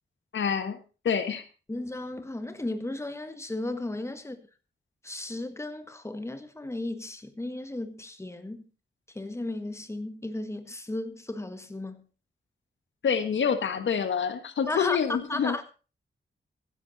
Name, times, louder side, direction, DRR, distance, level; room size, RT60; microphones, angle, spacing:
voice 1, 0.3-0.8 1.0-1.4 13.0-15.5, left 7 dB, 90° left, 1.6 m, -27 dB
voice 2, 1.7-4.4 5.0-8.7 9.1-12.0 14.7-15.0 15.3-15.7, left 2 dB, 15° left, 1.5 m, -35 dB
15.5 x 11.0 x 4.1 m
wide cardioid pair, 100°, 19 cm